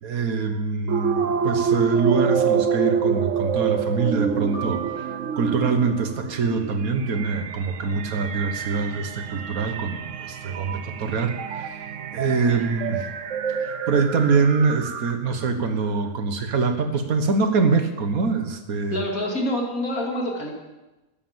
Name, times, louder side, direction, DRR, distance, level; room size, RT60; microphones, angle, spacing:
voice 1, 0.0-11.8 12.1-13.0 13.6-19.0, right 4 dB, 85° right, 7 dB, 1.8 m, -24 dB
sound 1, 0.9-15.4, right 7 dB, 65° right, 1.1 m, -27 dB
Keyboard (musical), 4.5-7.1, right 7 dB, 35° left, 5.1 m, -39 dB
voice 2, 18.9-20.6, left 1 dB, 75° left, 0 dB, 3.1 m, -27 dB
13.0 x 9.3 x 7.4 m, 1.1 s
omnidirectional pair, 1.5 m